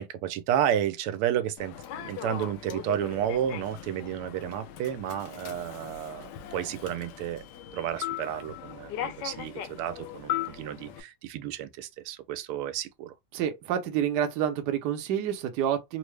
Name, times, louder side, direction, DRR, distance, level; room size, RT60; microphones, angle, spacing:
voice 1, 0.0-7.4 7.7-13.1, right 10 dB, 90° right, 1.5 m, -31 dB
Human voice / Subway metro underground, 1.6-11.0, left 10 dB, 75° left, 1.0 m, -38 dB
voice 2, 13.3-16.0, right 9 dB, 65° right, 1.1 m, -28 dB
3.7 x 2.0 x 3.2 m
omnidirectional pair, 2.4 m